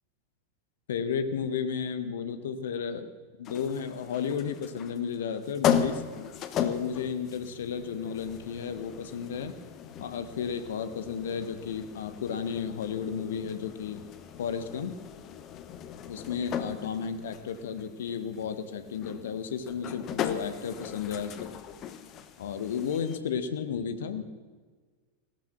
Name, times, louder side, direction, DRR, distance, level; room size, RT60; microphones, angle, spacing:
voice 1, 0.9-3.1 3.4-6.0 6.6-9.6 10.0-14.0 14.4-15.0 16.1-21.5 22.4-24.2, left 7 dB, 60° left, 10 dB, 1.4 m, -33 dB
sound 1, 3.4-23.2, left 8 dB, 35° left, 1.2 m, -37 dB
17.5 x 13.0 x 6.1 m, 1.5 s
figure-of-eight pair, 90°, 0 cm